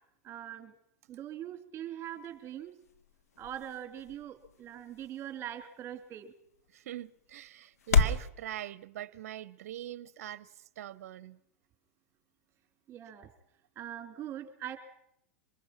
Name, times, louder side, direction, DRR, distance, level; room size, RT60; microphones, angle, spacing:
voice 1, 0.2-0.7 1.1-2.7 3.4-6.3 12.9-13.3 13.8-14.8, right 11 dB, 30° right, 2.8 m, -42 dB
sound 1, 2.0-8.3, left 5 dB, 90° left, 1.5 m, -34 dB
voice 2, 6.7-11.4, right 12 dB, 75° right, 0.7 m, -42 dB
25.0 x 21.0 x 5.8 m
hypercardioid pair, 115°, 8 cm